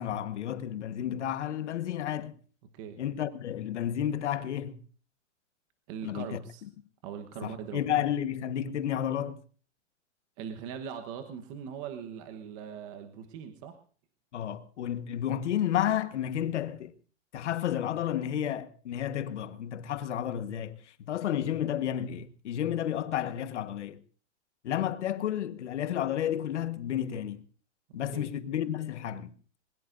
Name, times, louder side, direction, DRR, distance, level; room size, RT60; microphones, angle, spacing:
voice 1, 0.0-2.3 3.0-4.8 6.0-6.4 7.4-9.4 14.3-16.9 17.3-24.0 24.6-27.4 27.9-29.3, left 10 dB, 70° left, 1.4 m, -31 dB
voice 2, 5.9-6.6 7.0-7.8 10.4-13.8 28.1-28.3, right 8 dB, 25° right, 1.2 m, -40 dB
21.5 x 20.5 x 2.6 m
hypercardioid pair, 170°, 37 cm